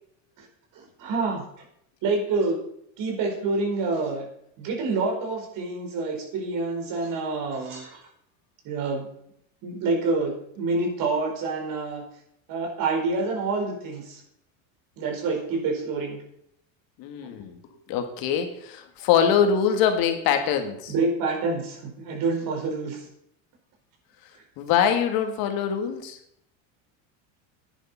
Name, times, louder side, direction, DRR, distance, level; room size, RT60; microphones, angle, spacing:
voice 1, 0.8-1.4 2.0-2.6 3.0-4.3 4.6-8.0 8.6-9.1 9.6-12.0 12.5-14.2 15.0-16.2 17.2-17.3 20.9-23.1, right 3 dB, 55° right, 1 dB, 4.6 m, -27 dB
voice 2, 17.0-17.6 17.9-20.9 24.6-26.2, left 8 dB, 60° left, 6 dB, 2.1 m, -23 dB
10.5 x 10.0 x 5.6 m, 0.72 s
supercardioid pair, 120°, 40 cm